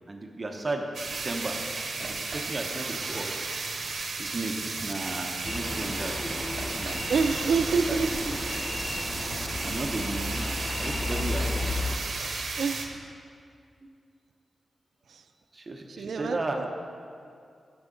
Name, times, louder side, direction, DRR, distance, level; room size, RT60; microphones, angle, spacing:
voice 1, 0.1-1.6 2.0-3.3 4.2-7.1 7.9-8.0 8.3-8.4 9.6-11.7 15.5-16.6, right 2 dB, 25° right, 2 dB, 0.7 m, -35 dB
sound 1, 0.9-12.9, right 3 dB, 50° right, 0.9 m, -34 dB
sound 2, 5.4-12.0, left 2 dB, 25° left, 0.6 m, -33 dB
voice 2, 7.1-8.2 12.6-13.1 15.1-15.2 15.9-16.7, right 5 dB, 75° right, 8 dB, 0.5 m, -28 dB
15.5 x 6.9 x 3.8 m, 2.4 s
wide cardioid pair, 170°, 0 cm